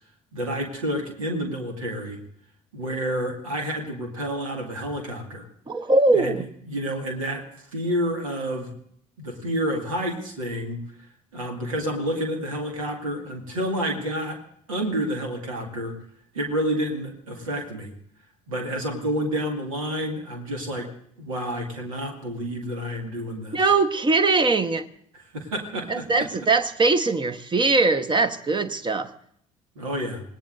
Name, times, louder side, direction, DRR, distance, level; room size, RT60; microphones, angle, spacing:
voice 1, 0.3-2.2 2.7-5.5 6.1-6.4 6.6-7.4 7.7-8.7 9.2-10.8 11.3-14.4 14.7-16.0 16.3-17.9 18.5-20.9 21.2-23.7 25.3-26.3 29.8-30.2, equal, 80° right, 3 dB, 2.2 m, -29 dB
voice 2, 5.7-6.4 23.5-24.9 25.9-29.1, right 3 dB, 30° right, 11 dB, 1.1 m, -21 dB
26.0 x 19.0 x 2.6 m, 0.68 s
figure-of-eight pair, 50°, 17 cm